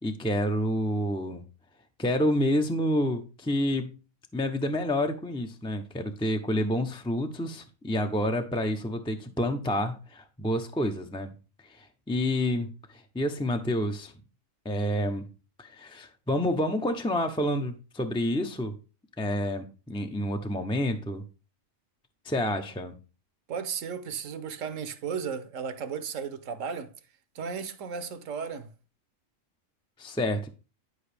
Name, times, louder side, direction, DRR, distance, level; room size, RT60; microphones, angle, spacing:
voice 1, 0.0-1.4 2.0-3.9 4.3-11.3 11.6-14.1 14.6-15.3 15.6-18.7 19.2-21.2 22.2-22.9 30.0-30.5, left 1 dB, 10° left, 0.3 m, -29 dB
voice 2, 23.5-26.9 27.3-28.7, right 6 dB, 70° right, 1.1 m, -34 dB
11.0 x 5.0 x 3.3 m
omnidirectional pair, 1.4 m